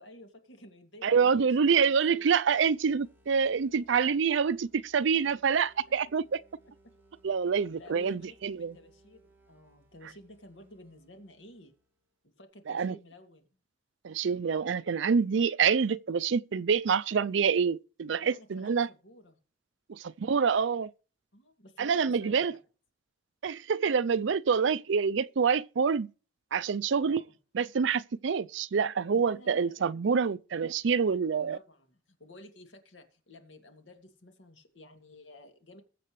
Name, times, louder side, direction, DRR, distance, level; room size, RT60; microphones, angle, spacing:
voice 1, 0.0-1.8 2.1-2.3 5.1-5.5 6.8-6.9 7.7-11.7 12.2-13.5 18.2-19.4 21.3-22.5 23.4-23.5 27.0-27.3 29.1-29.7 31.5-35.8, left 1 dB, 70° left, 2.4 m, -52 dB
voice 2, 1.0-6.4 7.2-8.7 12.7-13.0 14.0-18.9 19.9-20.9 21.8-22.6 23.4-26.1 26.5-27.2 27.5-31.6, right 6 dB, 70° right, 0.4 m, -26 dB
sound 1, 2.6-12.1, right 2 dB, 10° right, 2.9 m, -65 dB
21.0 x 7.6 x 3.2 m
head